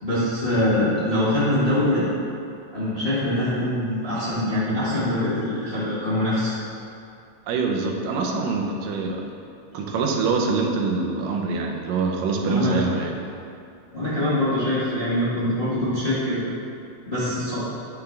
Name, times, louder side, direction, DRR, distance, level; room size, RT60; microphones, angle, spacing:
voice 1, 0.0-2.1 2.7-6.5 12.4-12.9 13.9-16.4 17.1-17.6, left 1 dB, 25° left, -11 dB, 1.2 m, -23 dB
voice 2, 7.5-9.3 9.7-13.3, right 4 dB, 85° right, 2 dB, 2.4 m, -25 dB
9.6 x 7.2 x 3.3 m, 2.5 s
omnidirectional pair, 3.8 m